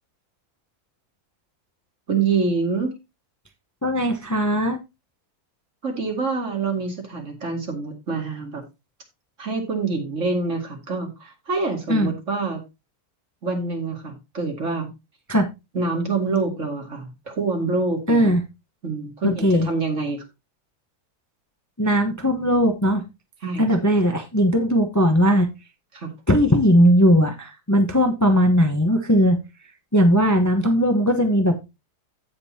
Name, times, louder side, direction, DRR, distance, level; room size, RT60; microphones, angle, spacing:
voice 1, 2.1-3.0 5.8-8.6 9.4-12.6 13.4-14.9 15.7-18.3 18.8-20.2 23.4-23.7 25.9-26.1, right 4 dB, 55° right, 2 dB, 2.5 m, -26 dB
voice 2, 3.8-4.8 11.9-12.1 15.3-15.4 18.1-18.4 19.2-19.7 21.8-23.0 23.6-25.5 26.3-29.4 29.9-31.7, equal, 15° left, 5 dB, 0.9 m, -18 dB
15.5 x 5.3 x 2.8 m, 0.24 s
omnidirectional pair, 1.6 m